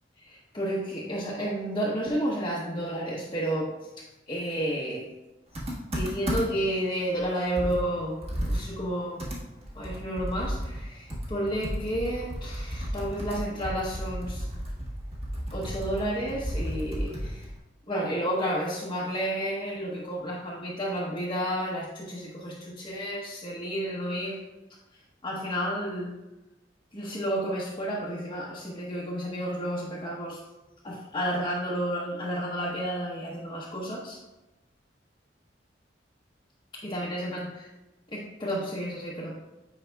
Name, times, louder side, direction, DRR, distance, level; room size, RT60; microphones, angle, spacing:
voice 1, 0.2-5.1 5.9-8.2 8.5-9.2 9.7-14.5 15.5-17.5 17.9-24.4 25.2-26.2 26.9-30.4 30.8-34.2 36.8-37.5 38.1-39.4, equal, 25° left, -6 dB, 0.9 m, -31 dB
Computer keyboard, 5.5-6.7 7.2-7.3 7.6-10.8 11.1-17.6, equal, 35° right, 1.4 m, -33 dB
9.1 x 4.9 x 2.3 m, 1.0 s
head